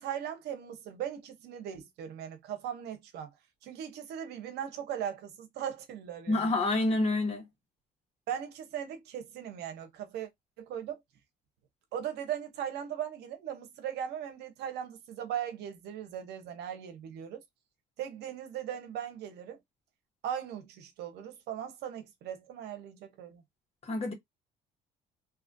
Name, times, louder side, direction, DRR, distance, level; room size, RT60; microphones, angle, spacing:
voice 1, 0.0-3.3 3.6-6.5 8.3-10.3 10.6-11.0 11.9-17.4 18.0-19.6 20.2-23.4, right 9 dB, 75° right, 0.8 m, -38 dB
voice 2, 6.3-7.5 23.8-24.1, left 2 dB, 35° left, 1.3 m, -28 dB
2.8 x 2.4 x 2.6 m
cardioid pair, 110°, 17 cm